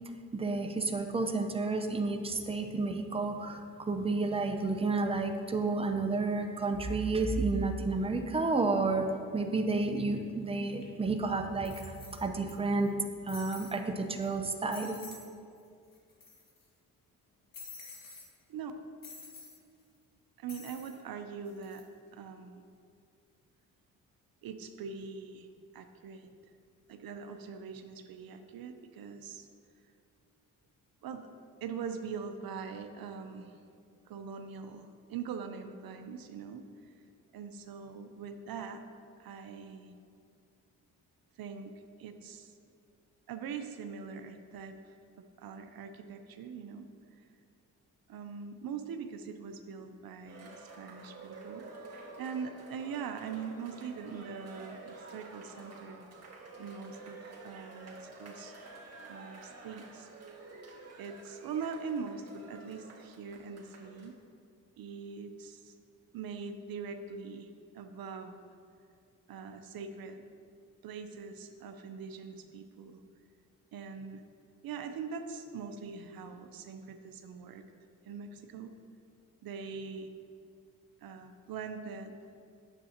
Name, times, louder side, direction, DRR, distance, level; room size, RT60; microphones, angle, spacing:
voice 1, 0.3-9.1 9.3-12.9 13.3-15.0, right 3 dB, 15° right, 4 dB, 0.7 m, -31 dB
sound 1, 10.8-10.9 11.6-12.5 12.8-12.9 13.3-13.8 14.2-14.3 14.7-15.3 15.6-15.7 15.9-16.6 17.5-18.3 19.0-19.6 20.5-21.0 21.5-21.8, left 4 dB, 55° left, 1.7 m, -49 dB
voice 2, 20.4-21.9 22.1-22.6 24.4-26.3 26.9-29.5 31.0-31.3 31.6-33.6 34.1-36.9 37.3-38.8 39.2-39.9 41.4-41.7 42.0-42.5 43.3-44.9 45.4-46.9 48.1-56.1 56.6-58.5 59.1-60.1 61.0-64.1 64.8-65.7 66.1-67.5 67.7-68.4 69.3-70.2 70.8-73.0 73.7-74.2 74.6-77.6 78.0-78.7 79.4-80.1 81.0-82.2, right 6 dB, 65° right, 7 dB, 0.6 m, -42 dB
Cheering, 50.2-64.1, right 3 dB, 40° right, 1.9 m, -50 dB
9.1 x 7.5 x 2.9 m, 2.3 s
supercardioid pair, 60°, 38 cm